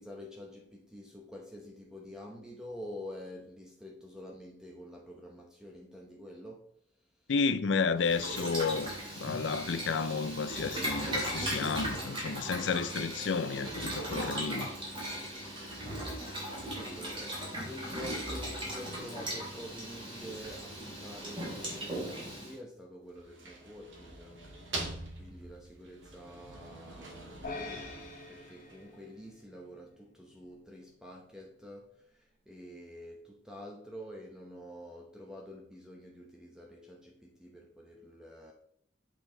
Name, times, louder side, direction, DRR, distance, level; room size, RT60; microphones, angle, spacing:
voice 1, 0.0-6.7 16.7-24.5 25.1-38.5, equal, 5° right, 0.8 m, -47 dB
voice 2, 7.3-8.9 9.2-14.7 15.0-15.3, left 5 dB, 70° left, 0.5 m, -31 dB
Boiling, 8.0-22.5, right 1 dB, 25° right, 2.8 m, -38 dB
sound 1, 23.0-29.1, right 2 dB, 80° right, 1.8 m, -44 dB
sound 2, 27.4-29.9, left 3 dB, 45° left, 1.4 m, -45 dB
7.9 x 4.6 x 3.9 m
head